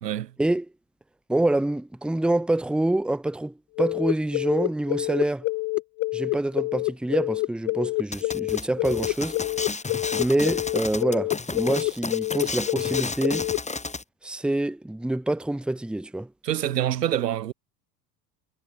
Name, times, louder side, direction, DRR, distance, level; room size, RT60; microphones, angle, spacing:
voice 1, 0.0-0.3 16.4-17.5, right 11 dB, 80° right, 1.4 m, -26 dB
voice 2, 1.3-5.4 6.1-9.4 10.2-13.5 14.2-16.3, right 1 dB, ahead, 1.1 m, -26 dB
sound 1, 3.8-13.6, left 22 dB, 30° left, 0.4 m, -27 dB
sound 2, 8.1-14.0, left 3 dB, 15° left, 7.2 m, -32 dB
figure-of-eight pair, 75°, 48 cm